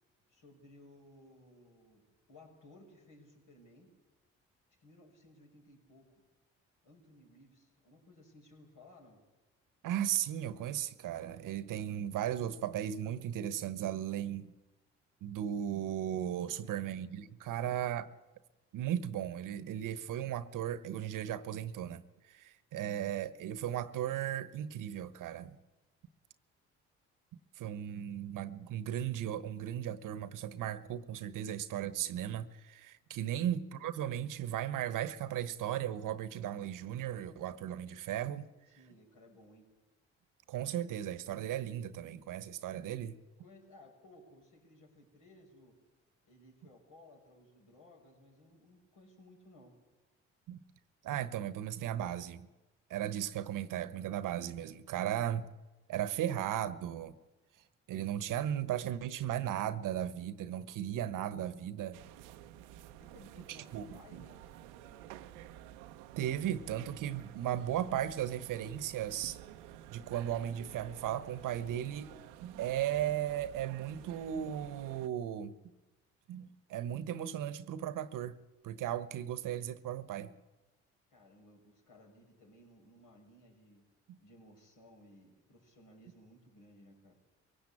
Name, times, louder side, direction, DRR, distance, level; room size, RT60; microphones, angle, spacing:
voice 1, 0.3-3.9 4.8-6.2 6.8-9.2 16.6-16.9 17.5-17.9 33.3-33.5 38.7-39.7 43.4-45.7 46.2-49.8 63.0-65.1 81.1-83.9 84.2-87.2, left 1 dB, 70° left, 6.7 m, -59 dB
voice 2, 9.8-14.5 15.2-18.1 18.7-25.6 27.6-38.5 40.5-43.1 50.5-50.6 51.0-52.5 52.9-55.5 55.9-57.1 57.9-62.0 63.5-64.2 66.2-69.4 69.9-72.1 72.4-75.5 76.3-78.4 78.6-80.3 84.1-84.2, right 11 dB, 70° right, 1.2 m, -36 dB
sound 1, 61.9-75.1, right 12 dB, 90° right, 0.8 m, -52 dB
22.5 x 17.0 x 8.6 m
hypercardioid pair, 55°, 33 cm